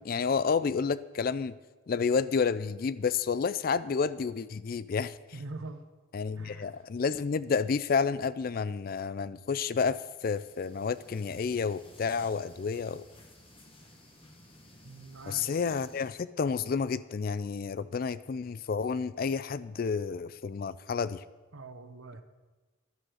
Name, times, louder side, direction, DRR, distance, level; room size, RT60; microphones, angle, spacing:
voice 1, 0.0-1.5 1.9-5.2 6.1-13.0 15.3-21.2, left 5 dB, 45° left, 17 dB, 0.3 m, -30 dB
voice 2, 5.3-5.9 6.4-6.7 14.8-15.5 21.5-22.2, right 2 dB, 85° right, 9 dB, 1.0 m, -43 dB
sound 1, 10.2-16.1, left 1 dB, 25° left, 1.5 m, -56 dB
11.0 x 7.8 x 6.4 m, 1.2 s
head